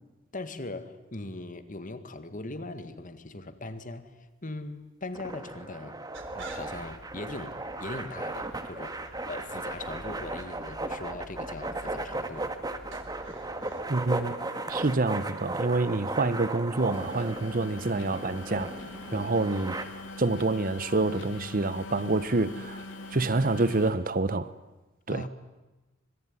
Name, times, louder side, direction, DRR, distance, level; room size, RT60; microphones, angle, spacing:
voice 1, 0.3-6.0 6.3-12.5 19.1-19.3 25.1-25.3, left 2 dB, 40° left, 1.8 m, -40 dB
sound 1, 5.1-19.8, right 2 dB, 20° right, 1.9 m, -36 dB
sound 2, 6.1-13.8, right 2 dB, 65° right, 3.6 m, -49 dB
voice 2, 13.9-14.4 14.7-18.7 19.1-19.8 20.2-22.8 23.1-24.5 25.1-25.2, right 2 dB, 45° right, 1.0 m, -27 dB
sound 3, 16.9-23.9, left 2 dB, 65° left, 3.5 m, -42 dB
25.5 x 22.5 x 9.7 m
head